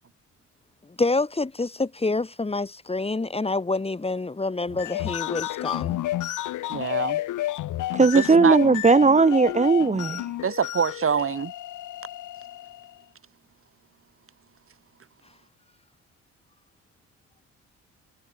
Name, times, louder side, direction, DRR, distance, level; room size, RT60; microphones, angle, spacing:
voice 1, 1.0-6.0, left 3 dB, 20° left, 3.0 m, -27 dB
sound 1, 4.7-12.9, left 14 dB, 85° left, 5.2 m, -31 dB
voice 2, 6.7-7.2 8.1-8.6 10.4-11.5, right 6 dB, 45° right, 7.7 m, -25 dB
voice 3, 7.9-10.2, right 4 dB, 25° right, 1.6 m, -18 dB
cardioid pair, 90°, 30 cm